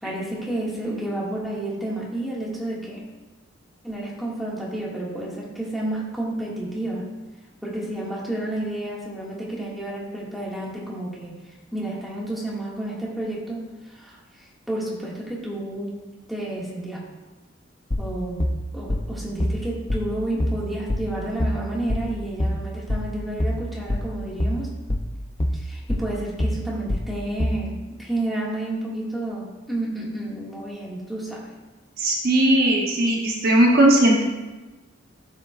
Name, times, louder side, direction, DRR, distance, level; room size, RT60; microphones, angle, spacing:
voice 1, 0.0-3.0 3.8-7.1 7.6-11.4 11.7-15.9 16.3-17.0 18.0-18.4 18.7-24.7 25.5-31.5, right 1 dB, ahead, -6 dB, 2.0 m, -30 dB
sound 1, 17.9-27.7, left 1 dB, 25° left, 0.6 m, -26 dB
voice 2, 32.0-34.2, right 1 dB, 50° right, -1 dB, 1.1 m, -18 dB
12.5 x 7.4 x 2.5 m, 1.2 s
head